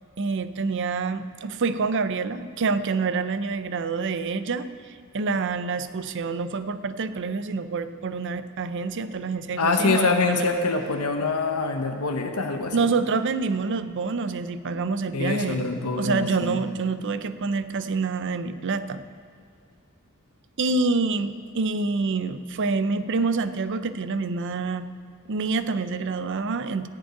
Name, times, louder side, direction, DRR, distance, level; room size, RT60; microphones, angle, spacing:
voice 1, 0.2-10.6 12.7-15.7 16.0-19.0 20.6-24.9 25.3-26.9, right 4 dB, 55° right, 12 dB, 0.5 m, -27 dB
voice 2, 9.6-12.9 15.1-16.6, left 3 dB, 85° left, 4 dB, 1.0 m, -25 dB
14.5 x 5.3 x 9.2 m, 2.3 s
head